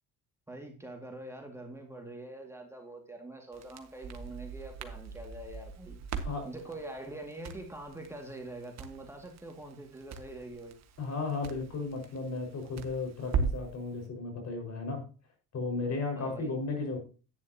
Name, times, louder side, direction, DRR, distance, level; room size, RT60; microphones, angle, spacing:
voice 1, 0.5-6.0 6.4-10.8 16.2-16.5, right 2 dB, 10° right, 2 dB, 2.1 m, -44 dB
Crackle, 3.5-13.8, right 5 dB, 50° right, 1.5 m, -39 dB
voice 2, 6.2-6.7 11.0-15.0 15.5-17.0, left 3 dB, 50° left, 4 dB, 5.1 m, -35 dB
10.5 x 9.8 x 2.8 m, 0.36 s
cardioid pair, 115°, 34 cm